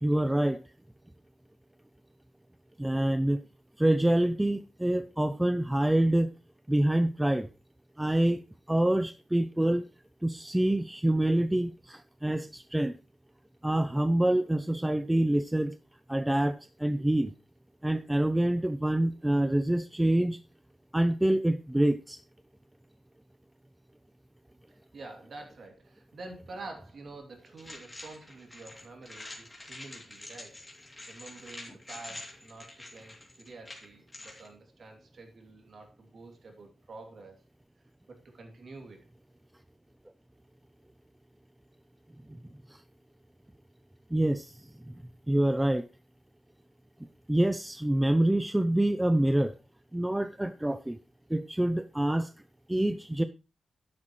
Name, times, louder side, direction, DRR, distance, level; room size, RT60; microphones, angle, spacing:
voice 1, 0.0-0.6 2.8-3.4 3.8-6.3 6.7-7.5 8.0-8.4 8.7-9.8 10.2-12.9 13.6-15.8 16.1-17.3 17.8-20.4 20.9-22.2 42.3-42.4 42.7-42.8 44.1-44.5 45.3-45.8 47.3-49.5 49.9-51.0 51.3-52.3 52.7-53.2, right 1 dB, 5° right, 0.4 m, -26 dB
voice 2, 24.7-30.6 31.1-37.4 38.1-39.1, right 3 dB, 50° right, 2.7 m, -48 dB
sound 1, 27.6-34.5, left 2 dB, 15° left, 2.7 m, -46 dB
11.5 x 10.0 x 3.1 m
wide cardioid pair, 175°, 0 cm